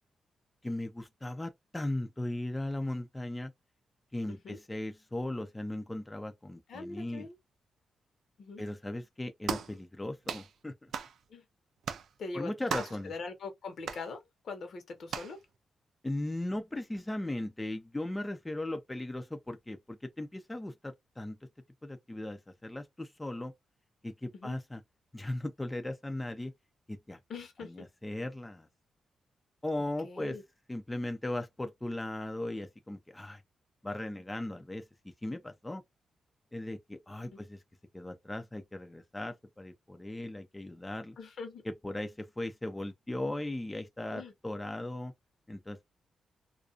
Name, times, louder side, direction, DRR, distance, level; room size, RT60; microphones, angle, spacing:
voice 1, 0.6-3.5 4.1-7.3 8.6-10.9 12.3-13.1 16.0-21.4 21.8-23.5 24.0-24.8 25.1-26.5 26.9-27.2 27.6-28.7 29.6-30.4 30.7-33.4 33.8-35.8 36.5-37.6 37.9-41.2 41.6-45.1 45.5-45.8, left 1 dB, 15° left, 0.4 m, -37 dB
voice 2, 6.7-7.3 8.4-8.6 11.3-11.4 12.2-15.4 24.3-24.6 27.3-27.9 30.0-30.4 41.2-41.6 44.1-44.3, left 4 dB, 65° left, 0.9 m, -42 dB
sound 1, 9.5-9.7 10.3-10.5 10.9-11.1 11.8-12.1 12.7-13.0 13.8-14.0 15.1-15.3, right 7 dB, 75° right, 0.4 m, -36 dB
2.4 x 2.3 x 2.4 m
cardioid pair, 85°, 0 cm